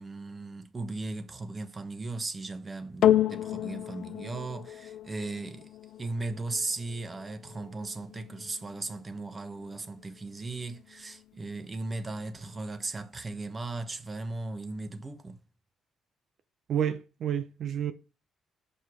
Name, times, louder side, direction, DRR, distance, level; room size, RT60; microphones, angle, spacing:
voice 1, 0.0-5.7 6.0-15.4, right 3 dB, 30° right, 1.0 m, -37 dB
sound 1, 3.0-11.6 12.3-12.4, left 11 dB, 70° left, 0.4 m, -32 dB
voice 2, 16.7-17.9, right 9 dB, 65° right, 0.6 m, -30 dB
6.1 x 5.4 x 4.9 m
cardioid pair, 90°, 0 cm